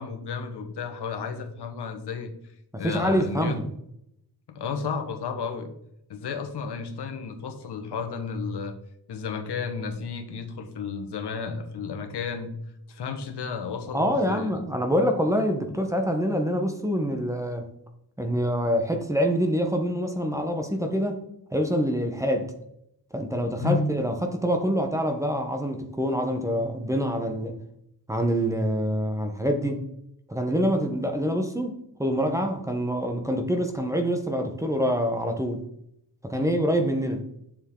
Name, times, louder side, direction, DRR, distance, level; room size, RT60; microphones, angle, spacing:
voice 1, 0.0-2.3 2.8-3.6 4.5-5.7 6.1-8.7 9.1-12.5 12.9-14.6 23.6-23.9 36.3-36.6, left 5 dB, 85° left, 6 dB, 1.4 m, -32 dB
voice 2, 2.7-3.6 13.9-17.7 18.2-21.2 21.5-22.5 23.1-27.6 28.1-29.8 30.3-35.6 36.2-37.2, equal, 10° right, 5 dB, 0.9 m, -26 dB
8.8 x 7.1 x 3.7 m, 0.75 s
wide cardioid pair, 170°, 39 cm